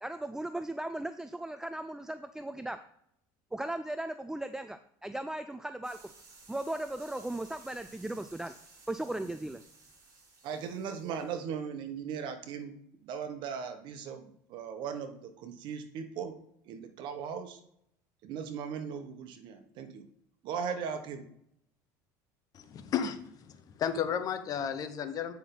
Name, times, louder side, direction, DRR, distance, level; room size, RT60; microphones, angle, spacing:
voice 1, 0.0-2.8 3.5-6.1 6.5-8.5 8.9-9.6, right 1 dB, 5° right, 10 dB, 0.3 m, -37 dB
sound 1, 5.8-11.4, right 3 dB, 40° right, 3.1 m, -56 dB
voice 2, 10.4-12.8 13.0-16.4 16.6-17.6 18.2-20.1 20.4-21.3, right 7 dB, 60° right, 7 dB, 1.3 m, -38 dB
voice 3, 22.5-25.3, left 8 dB, 40° left, 9 dB, 1.0 m, -33 dB
9.2 x 5.8 x 3.9 m, 0.73 s
supercardioid pair, 125°, 9 cm